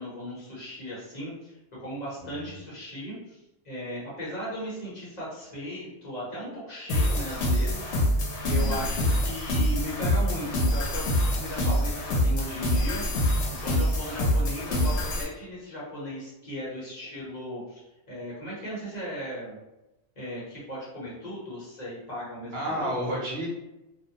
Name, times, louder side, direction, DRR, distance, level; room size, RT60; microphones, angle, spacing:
voice 1, 0.0-8.0 8.4-13.3 13.6-17.8 18.1-19.6 20.2-22.9, equal, 40° left, -8 dB, 0.9 m, -37 dB
voice 2, 2.2-2.6 8.6-9.1 22.5-23.5, equal, 65° right, -4 dB, 0.9 m, -32 dB
sound 1, 6.9-15.2, left 1 dB, 85° left, 0.9 m, -25 dB
2.5 x 2.1 x 2.8 m, 0.96 s
omnidirectional pair, 1.2 m